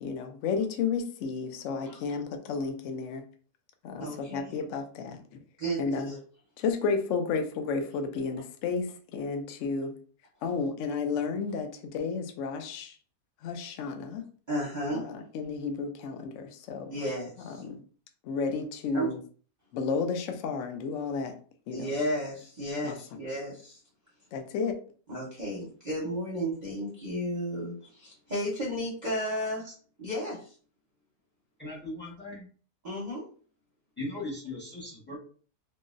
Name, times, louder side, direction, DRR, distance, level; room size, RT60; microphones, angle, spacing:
voice 1, 0.0-3.2 3.8-5.2 5.8-6.1 6.6-9.9 10.4-13.0 13.4-14.2 14.9-16.9 17.6-17.8 18.2-19.2 19.7-21.3 21.7-21.9 22.8-22.9 24.3-24.8, left 5 dB, 70° left, 6 dB, 0.7 m, -32 dB
voice 2, 4.0-4.5 5.6-6.2 14.5-15.1 16.9-17.6 18.9-19.1 21.7-23.8 25.1-29.7 30.0-30.5 32.8-33.2, equal, 40° right, -6 dB, 0.7 m, -33 dB
voice 3, 31.6-32.4 34.0-35.2, left 2 dB, 15° left, -4 dB, 0.4 m, -38 dB
3.7 x 2.0 x 2.5 m, 0.42 s
omnidirectional pair, 1.8 m